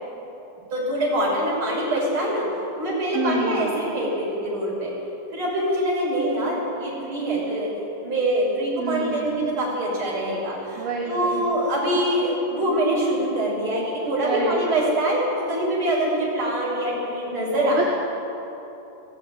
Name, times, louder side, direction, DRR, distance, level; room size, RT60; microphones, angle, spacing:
voice 1, 0.7-2.5 2.8-4.9 5.3-7.7 8.0-17.9, right 1 dB, 25° right, -5 dB, 7.1 m, -24 dB
voice 2, 3.1-3.8 8.8-9.5 10.8-11.5 14.2-14.7 17.5-17.9, right 3 dB, 60° right, -2 dB, 3.1 m, -28 dB
17.0 x 16.5 x 9.3 m, 3.0 s
omnidirectional pair, 5.6 m